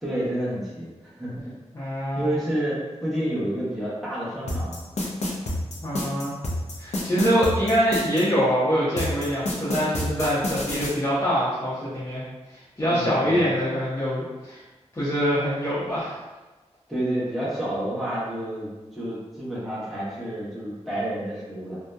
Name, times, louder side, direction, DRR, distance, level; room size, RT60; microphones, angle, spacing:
voice 1, 0.0-1.5 2.1-4.8 12.8-13.5 16.9-21.8, right 1 dB, ahead, -9 dB, 0.9 m, -29 dB
voice 2, 1.7-2.4 5.8-6.3 6.8-12.2 12.5-14.6 14.9-16.2, equal, 25° left, -10 dB, 0.6 m, -24 dB
sound 1, 4.5-8.2 9.0-10.9, left 1 dB, 75° left, 0.5 m, -28 dB
2.7 x 2.0 x 2.2 m, 1.1 s
wide cardioid pair, 95°, 12 cm